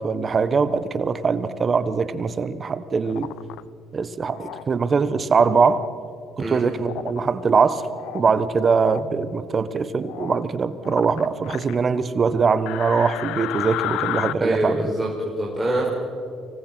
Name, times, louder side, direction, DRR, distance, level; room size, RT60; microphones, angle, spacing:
voice 1, 0.0-3.3 3.9-5.8 6.4-7.8 8.1-14.9, right 5 dB, 40° right, 13 dB, 1.3 m, -22 dB
sound 1, 3.0-3.6 4.3-4.6 5.4-5.9 6.8-7.2 7.7-8.3 8.6-9.0 10.0-10.4 10.8-11.8 12.7-14.3, left 15 dB, 80° left, 0.6 m, -32 dB
voice 2, 14.4-15.9, right 1 dB, 10° right, -4 dB, 4.6 m, -25 dB
25.0 x 18.5 x 6.0 m, 2.3 s
supercardioid pair, 75°, 0 cm